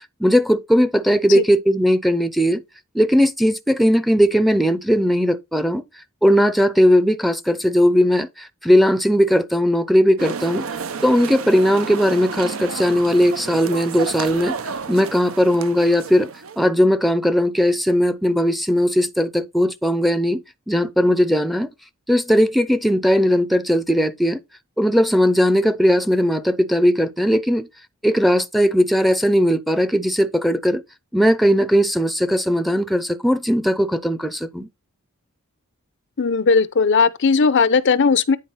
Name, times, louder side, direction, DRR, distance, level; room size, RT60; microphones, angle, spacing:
voice 1, 0.2-2.6 2.9-5.8 6.2-10.6 11.0-16.3 16.6-21.7 22.1-24.4 24.8-27.7 28.0-30.8 31.1-34.7, equal, ahead, 0.6 m, -18 dB
sound 1, 10.2-16.7, right 5 dB, 75° right, 0.7 m, -31 dB
voice 2, 36.2-38.4, left 5 dB, 60° left, 0.6 m, -17 dB
9.4 x 4.4 x 4.1 m
head